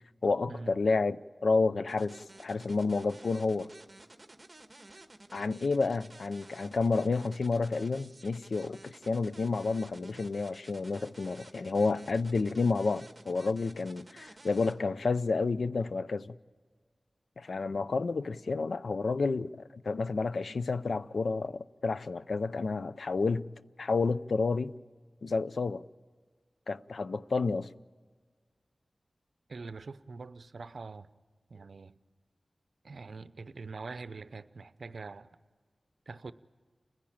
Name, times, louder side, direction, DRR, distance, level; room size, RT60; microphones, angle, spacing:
voice 1, 0.2-3.7 5.3-16.3 17.4-23.5 23.8-24.7 25.2-25.8 26.7-27.7, left 4 dB, 80° left, 0.5 m, -30 dB
sound 1, 1.9-14.7, right 2 dB, 30° right, 1.7 m, -53 dB
voice 2, 29.5-31.1 31.5-32.0 32.8-35.3 36.1-36.3, right 4 dB, 75° right, 0.6 m, -44 dB
29.5 x 10.5 x 8.7 m
cardioid pair, 45°, 0 cm